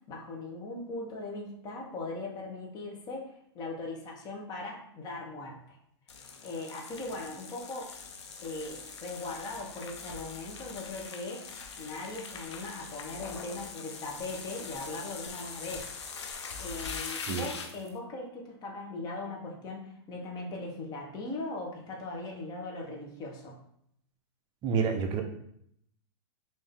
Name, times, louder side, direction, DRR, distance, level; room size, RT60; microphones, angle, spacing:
voice 1, 0.1-5.8 6.4-7.9 8.4-11.5 11.8-15.9 16.6-23.6, left 2 dB, 30° left, 0 dB, 0.9 m, -39 dB
sound 1, 6.1-17.9, left 5 dB, 85° left, 0.6 m, -42 dB
voice 2, 24.6-25.2, right 6 dB, 30° right, 4 dB, 0.6 m, -28 dB
3.4 x 2.6 x 3.6 m, 0.71 s
hypercardioid pair, 125°, 14 cm